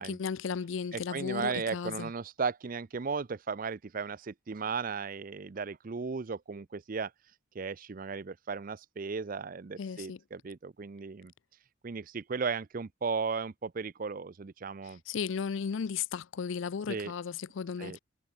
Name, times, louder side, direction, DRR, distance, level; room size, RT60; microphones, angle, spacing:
voice 1, 0.0-2.1 9.8-10.2 14.8-18.0, left 6 dB, 65° left, 0.4 m, -35 dB
voice 2, 0.9-7.1 7.5-11.3 11.8-15.0 16.9-17.1 17.8-18.0, right 5 dB, 40° right, 0.5 m, -36 dB
head